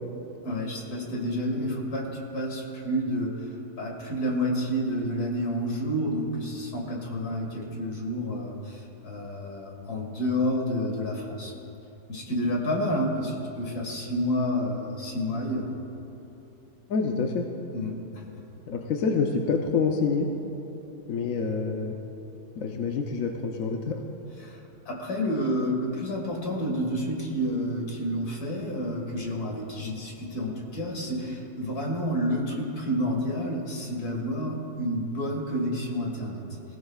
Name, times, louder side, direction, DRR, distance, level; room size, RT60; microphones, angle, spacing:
voice 1, 0.4-3.5 3.8-11.5 12.1-15.7 17.7-18.2 24.4-36.4, equal, 85° left, 0 dB, 2.5 m, -29 dB
voice 2, 16.9-17.5 18.7-20.3 21.1-22.0 22.6-24.0, left 5 dB, 65° left, 2 dB, 1.2 m, -27 dB
21.0 x 16.0 x 2.4 m, 2.9 s
omnidirectional pair, 1.6 m